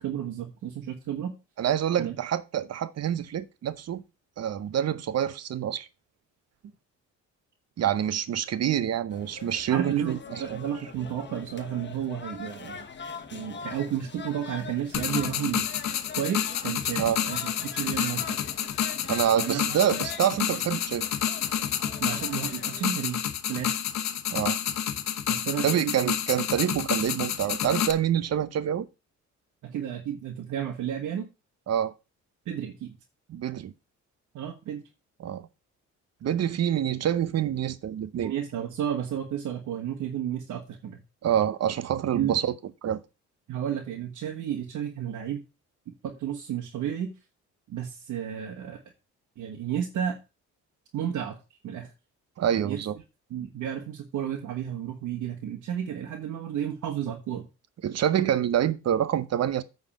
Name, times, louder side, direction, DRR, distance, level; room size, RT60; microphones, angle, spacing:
voice 1, 0.0-1.3 2.0-2.2 9.7-12.9 13.3-15.7 16.1-17.4 17.7-18.4 19.3-19.8 22.0-23.9 25.3-26.1 29.6-31.3 32.4-32.9 34.3-34.8 38.2-41.0 42.1-42.4 43.5-45.4 46.0-47.1 47.7-48.8 49.4-50.2 50.9-51.4 51.6-51.9 52.6-52.8 53.3-57.5, right 9 dB, 75° right, 1.6 m, -32 dB
voice 2, 1.6-4.0 4.4-5.9 7.8-10.2 17.0-17.2 19.1-21.1 24.3-24.6 25.6-28.9 31.7-31.9 33.3-33.7 35.2-35.5 36.2-38.3 41.2-42.4 42.8-43.0 52.4-53.0 57.8-59.6, right 10 dB, 55° right, 0.8 m, -26 dB
sound 1, 9.1-22.9, left 6 dB, 35° left, 1.3 m, -43 dB
sound 2, 14.9-27.9, left 9 dB, 65° left, 1.0 m, -29 dB
8.9 x 4.1 x 6.3 m
cardioid pair, 90°, 30 cm